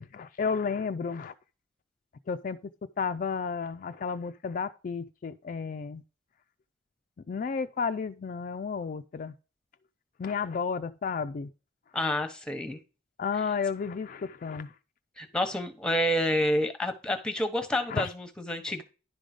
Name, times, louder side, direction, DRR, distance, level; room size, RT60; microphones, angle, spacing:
voice 1, 0.0-1.3 2.3-2.6 3.0-6.0 7.3-9.3 10.2-11.5 13.2-14.7 17.9-18.1, left 5 dB, 50° left, 0.3 m, -32 dB
voice 2, 11.9-12.8 15.2-18.8, left 1 dB, 5° left, 0.9 m, -29 dB
10.5 x 3.8 x 4.9 m
head